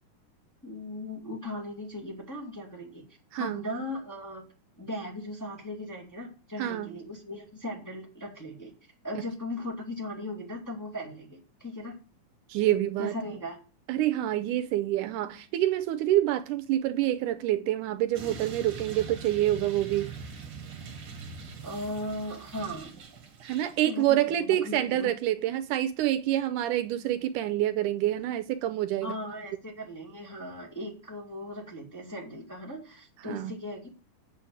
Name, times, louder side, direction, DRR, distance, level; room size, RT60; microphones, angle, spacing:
voice 1, 0.6-3.0 3.3-4.4 4.8-8.7 9.0-12.0 13.0-13.6 21.6-22.9 23.8-25.1 29.0-33.9, left 1 dB, 5° left, 1.8 m, -38 dB
voice 2, 6.6-6.9 9.2-9.3 12.5-13.2 13.9-20.1 23.4-29.1 33.2-33.5, right 13 dB, 80° right, 2.0 m, -27 dB
sound 1, 18.1-23.7, right 5 dB, 50° right, 2.1 m, -42 dB
8.2 x 6.3 x 7.7 m
omnidirectional pair, 3.7 m